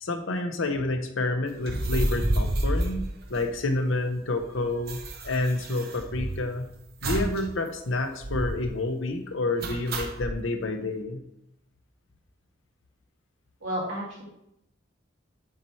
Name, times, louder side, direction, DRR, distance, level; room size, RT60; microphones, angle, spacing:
voice 1, 0.0-3.0 3.3-6.7 7.0-11.2, left 2 dB, 75° left, 6 dB, 0.7 m, -29 dB
sound 1, 1.6-3.9 4.1-4.2 4.4-6.5 7.0-7.4 7.7-7.8 8.2-8.7 9.6-10.3, right 1 dB, 50° right, 0.7 m, -29 dB
voice 2, 13.6-14.3, equal, 90° right, -5 dB, 2.4 m, -32 dB
7.2 x 3.2 x 4.2 m, 0.78 s
head